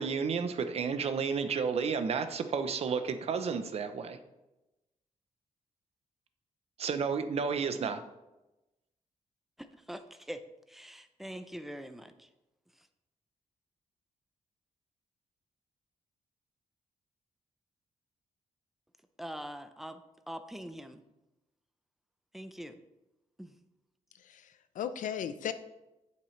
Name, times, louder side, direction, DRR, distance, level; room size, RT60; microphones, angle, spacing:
voice 1, 0.0-4.2 6.8-8.0, right 5 dB, 50° right, 9 dB, 0.7 m, -31 dB
voice 2, 9.6-10.4 10.7-12.3 19.2-20.0 20.3-21.0 22.3-22.8 23.4-23.5, equal, ahead, 9 dB, 0.5 m, -43 dB
voice 3, 24.1-25.5, left 9 dB, 85° left, 11 dB, 0.6 m, -37 dB
8.9 x 7.5 x 3.2 m, 0.99 s
wide cardioid pair, 155°, 13 cm